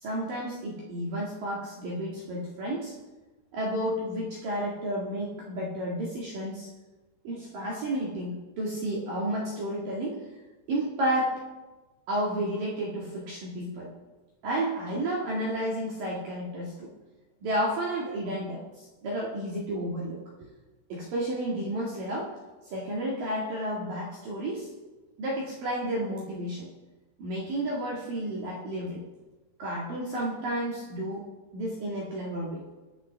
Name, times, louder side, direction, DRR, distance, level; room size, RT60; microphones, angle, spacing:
voice 1, 0.0-2.9 3.5-6.7 7.2-10.2 10.7-11.4 12.1-13.9 14.4-16.9 17.4-20.5 20.9-22.3 22.7-24.7 25.2-26.7 27.2-29.0 29.6-31.2 31.5-32.6, right 1 dB, 55° right, -5 dB, 2.9 m, -31 dB
24.0 x 8.9 x 3.4 m, 1.2 s
omnidirectional pair, 5.7 m